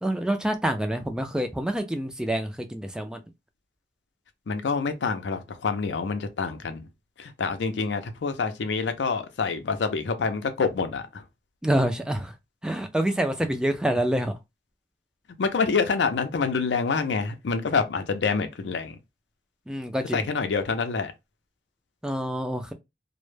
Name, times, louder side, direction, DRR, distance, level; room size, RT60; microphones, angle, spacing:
voice 1, 0.0-3.2 11.6-12.3 12.6-14.3 19.7-20.2 22.0-22.7, right 1 dB, 5° right, 0.3 m, -27 dB
voice 2, 4.5-6.9 7.2-11.2 15.4-19.0 20.1-21.1, left 5 dB, 80° left, 0.5 m, -27 dB
2.1 x 2.1 x 3.1 m
head